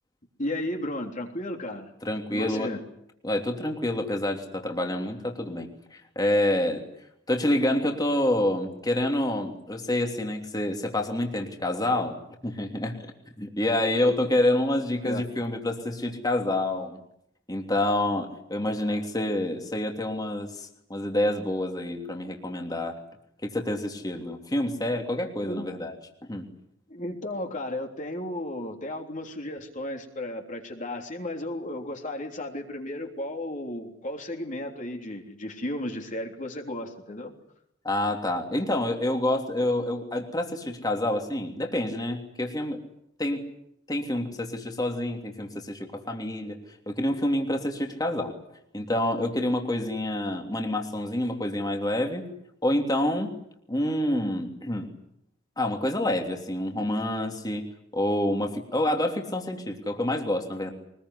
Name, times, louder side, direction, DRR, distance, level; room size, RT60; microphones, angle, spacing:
voice 1, 0.4-1.9 2.3-2.8 15.0-15.2 25.4-25.7 26.9-37.3, left 1 dB, 40° left, 2 dB, 3.5 m, -34 dB
voice 2, 2.0-2.8 3.2-6.8 7.3-12.2 12.4-13.1 13.4-17.0 17.5-23.0 23.4-25.9 26.3-26.5 37.8-42.8 43.2-43.4 43.9-46.6 46.9-48.3 48.7-52.3 52.6-53.3 53.7-54.9 55.6-57.6 57.9-60.7, left 1 dB, 20° left, 3 dB, 3.1 m, -27 dB
24.0 x 21.0 x 9.9 m, 0.74 s
head